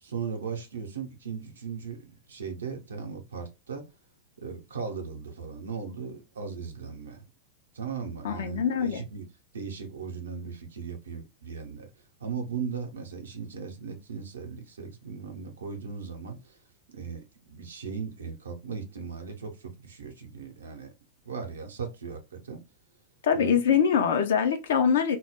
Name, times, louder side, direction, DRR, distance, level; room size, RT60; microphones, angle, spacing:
voice 1, 0.0-3.9 4.4-7.2 7.7-9.2 9.5-11.9 12.2-16.6 16.9-20.9 21.2-22.6 23.3-23.6, right 6 dB, 70° right, 0.6 m, -37 dB
voice 2, 8.2-9.0 23.2-25.2, left 7 dB, 60° left, 0.5 m, -23 dB
2.2 x 2.0 x 3.3 m
figure-of-eight pair, 90°, 0 cm